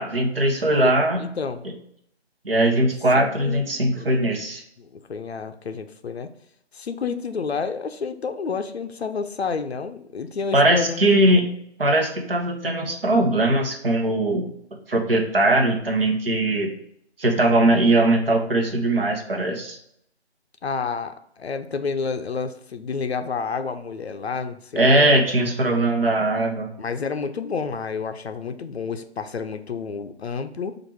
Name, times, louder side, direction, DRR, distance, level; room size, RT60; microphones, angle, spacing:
voice 1, 0.0-1.2 2.4-4.6 10.5-11.5 11.8-14.5 14.9-16.7 17.2-19.8 24.8-26.7, right 1 dB, 55° right, 2 dB, 1.0 m, -20 dB
voice 2, 0.7-1.6 3.1-3.6 4.0-4.1 4.8-6.3 6.7-11.0 20.6-25.1 26.8-30.8, left 5 dB, 65° left, 9 dB, 0.5 m, -30 dB
4.6 x 2.5 x 4.5 m, 0.71 s
figure-of-eight pair, 170°, 34 cm